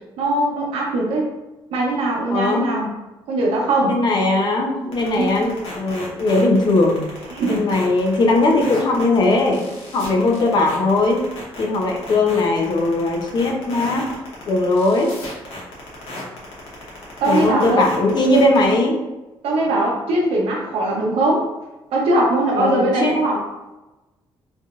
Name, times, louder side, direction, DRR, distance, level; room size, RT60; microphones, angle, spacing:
voice 1, 0.2-1.3 1.7-2.9 3.3-4.0 5.0-5.4 7.3-7.7 17.2-17.8 19.4-21.4 21.9-23.4, right 1 dB, 80° right, -3 dB, 0.9 m, -20 dB
voice 2, 2.3-2.7 3.9-7.1 7.5-11.2 11.6-14.1 14.5-15.1 17.3-19.0 22.6-23.1, left 2 dB, 50° left, 2 dB, 0.6 m, -19 dB
sound 1, 4.9-18.7, left 2 dB, 80° left, 1.1 m, -34 dB
3.3 x 2.7 x 2.4 m, 1.0 s
cardioid pair, 105°, 10 cm